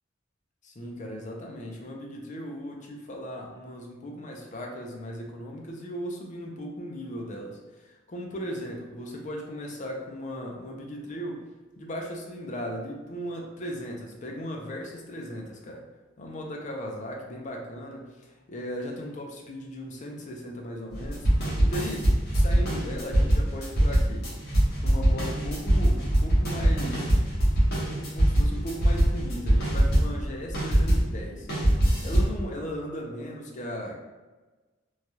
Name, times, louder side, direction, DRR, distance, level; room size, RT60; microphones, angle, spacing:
voice 1, 0.6-11.4 11.8-15.8 16.2-24.3 24.8-27.1 27.8-31.5 32.0-34.0, equal, 40° left, 0 dB, 0.5 m, -37 dB
sound 1, 20.9-31.1 31.5-32.4, right 1 dB, 55° left, 1.0 m, -22 dB
3.1 x 2.3 x 2.7 m, 1.2 s
head